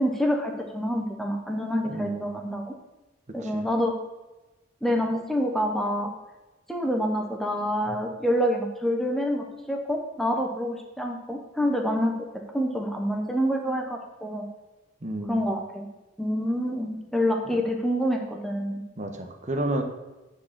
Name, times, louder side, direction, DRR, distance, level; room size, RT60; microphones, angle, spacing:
voice 1, 0.0-2.7 3.3-3.9 4.8-6.1 6.7-12.3 12.5-14.5 15.3-15.9 16.2-18.8, equal, ahead, 1 dB, 0.9 m, -27 dB
voice 2, 1.9-2.4 3.4-3.6 15.0-15.4 19.0-19.8, right 1 dB, 35° right, 4 dB, 1.2 m, -31 dB
9.3 x 4.9 x 7.3 m, 1.1 s
head